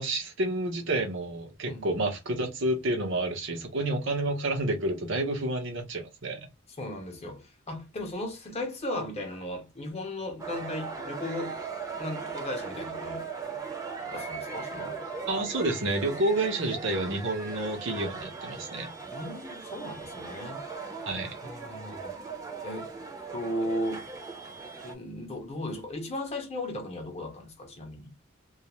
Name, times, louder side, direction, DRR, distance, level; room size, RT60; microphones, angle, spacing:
voice 1, 0.0-6.5 15.3-18.9 21.1-21.3, right 2 dB, 65° right, 0.8 m, -29 dB
voice 2, 6.8-13.3 14.0-15.0 19.1-20.6 21.4-22.1 22.6-22.9 23.3-24.1 24.8-28.1, left 1 dB, 30° left, 0.7 m, -36 dB
sound 1, 10.4-24.9, right 5 dB, 15° right, 0.6 m, -39 dB
2.3 x 2.1 x 2.9 m
head